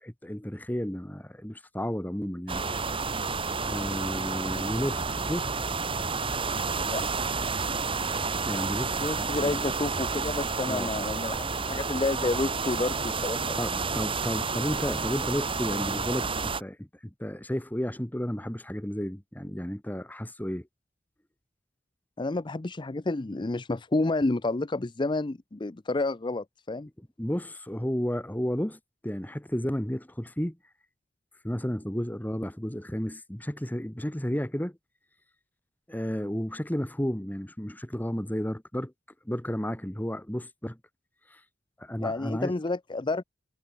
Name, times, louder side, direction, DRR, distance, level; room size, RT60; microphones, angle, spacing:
voice 1, 0.0-2.6 3.6-5.5 8.4-9.6 10.7-10.9 13.6-20.7 27.2-30.6 31.4-34.8 35.9-38.9 39.2-40.8 41.3-41.4 41.8-42.5, equal, 10° left, 1.4 m, -32 dB
sound 1, 2.5-16.6, right 4 dB, 30° right, 2.2 m, -30 dB
voice 2, 9.0-13.6 22.2-26.9 42.0-43.2, left 2 dB, 25° left, 0.6 m, -30 dB
head